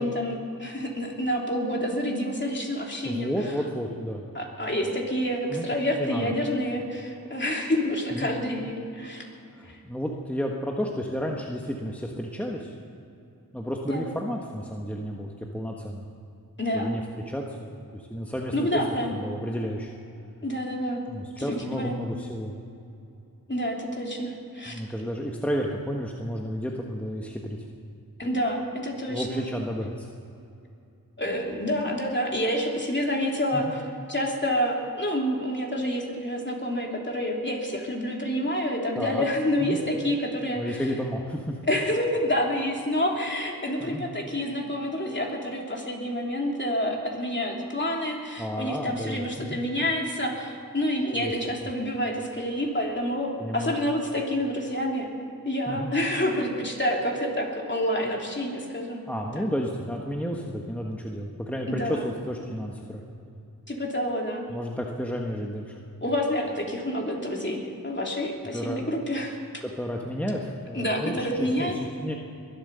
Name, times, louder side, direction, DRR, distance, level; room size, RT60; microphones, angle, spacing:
voice 1, 0.0-3.3 4.3-9.2 9.6-9.8 13.9-14.1 16.6-16.9 18.5-19.2 20.4-21.0 21.4-22.0 23.5-24.8 28.2-29.4 31.2-33.8 34.1-40.8 41.7-55.1 55.4-59.1 59.3-59.5 61.7-62.0 63.7-64.5 66.0-69.4 70.7-71.8, equal, 30° left, 0 dB, 3.0 m, -28 dB
voice 2, 3.0-4.2 5.5-5.7 6.0-6.3 8.1-8.3 9.5-12.8 13.5-16.1 16.7-18.8 19.1-19.9 21.1-22.6 24.7-27.7 29.1-30.1 33.5-33.7 39.0-39.2 39.6-39.8 40.6-41.6 43.8-44.0 48.4-49.6 51.1-51.3 51.6-51.7 53.4-53.8 55.7-55.9 59.1-63.0 64.5-65.8 68.5-68.9 69.6-72.1, equal, 5° left, 0 dB, 1.3 m, -32 dB
22.5 x 8.9 x 6.9 m, 2.7 s
wide cardioid pair, 50°, 35 cm